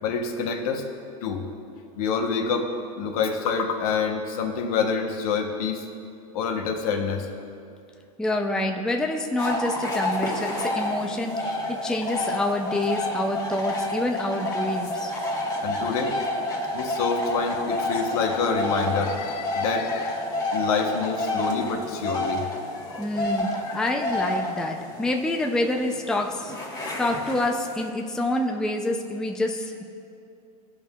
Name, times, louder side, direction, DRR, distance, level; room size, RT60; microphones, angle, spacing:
voice 1, 0.0-0.9 1.2-1.5 2.0-5.9 6.3-7.3 13.7-13.8 15.6-16.2 16.7-20.2 20.5-23.1 23.5-23.8, left 5 dB, 65° left, 4 dB, 1.0 m, -27 dB
voice 2, 8.2-15.2 23.0-29.8, left 1 dB, 5° left, 2 dB, 0.5 m, -27 dB
sound 1, 9.4-27.9, left 1 dB, 20° left, 1.5 m, -29 dB
16.5 x 5.5 x 2.4 m, 2.5 s
hypercardioid pair, 120°, 20 cm